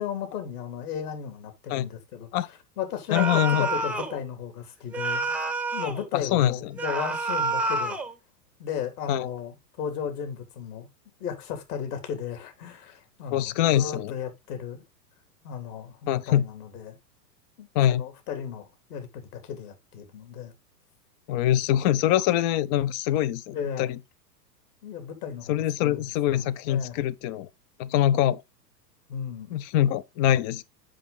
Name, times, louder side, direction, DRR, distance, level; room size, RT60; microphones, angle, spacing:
voice 1, 0.0-2.3 2.8-8.0 8.6-10.9 11.2-14.8 15.4-17.0 17.6-20.5 23.5-23.9 24.8-27.0 29.1-29.6, left 8 dB, 60° left, 3.4 m, -35 dB
voice 2, 3.1-3.7 6.1-6.8 9.1-9.3 13.3-14.1 16.1-16.4 17.7-18.0 21.3-24.0 25.5-27.5 27.8-28.4 29.5-30.6, left 12 dB, 30° left, 0.5 m, -24 dB
sound 1, 3.1-4.2 4.9-6.0 6.8-8.1, right 3 dB, 5° right, 0.8 m, -28 dB
7.7 x 6.0 x 4.0 m
hypercardioid pair, 115°, 50 cm